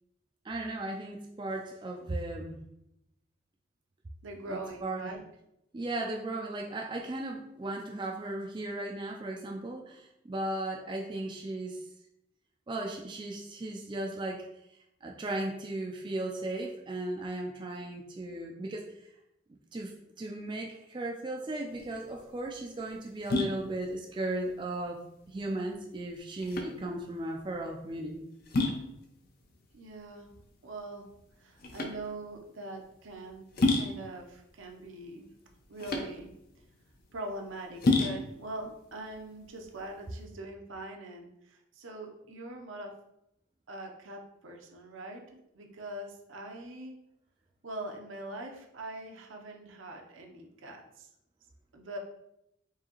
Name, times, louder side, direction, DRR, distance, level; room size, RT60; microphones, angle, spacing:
voice 1, 0.4-2.6 4.5-5.1 5.7-11.8 12.7-14.4 15.0-18.8 19.7-25.0 25.3-28.3, right 2 dB, 25° right, 0 dB, 0.3 m, -36 dB
voice 2, 4.2-5.2 29.7-30.3 30.6-31.1 31.4-33.5 33.7-35.3 35.7-36.4 37.1-42.9 43.7-47.0 47.6-51.1 51.7-52.0, right 2 dB, 75° right, 2 dB, 0.7 m, -42 dB
sound 1, 21.7-40.3, left 2 dB, 50° left, 0.5 m, -34 dB
4.7 x 2.8 x 2.9 m, 0.83 s
head